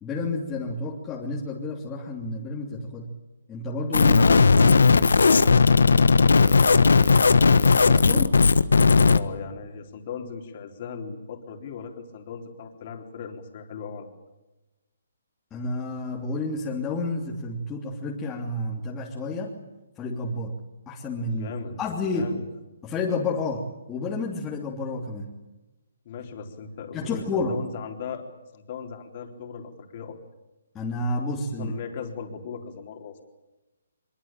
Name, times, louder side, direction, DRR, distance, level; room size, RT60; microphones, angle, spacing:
voice 1, 0.0-3.1 3.5-5.1 7.9-8.4 15.5-19.5 20.0-20.6 20.9-21.5 21.8-22.3 22.8-25.3 26.9-27.6 30.7-31.7, left 2 dB, 15° left, -4 dB, 3.1 m, -30 dB
sound 1, 3.9-9.2, left 4 dB, 90° left, 1.4 m, -17 dB
voice 2, 4.0-4.9 5.1-7.3 9.0-14.1 21.3-21.8 22.1-22.4 26.1-28.3 28.5-30.2 31.6-33.2, left 6 dB, 40° left, 3 dB, 3.9 m, -38 dB
24.0 x 23.0 x 9.1 m, 1.1 s
hypercardioid pair, 160°, 0 cm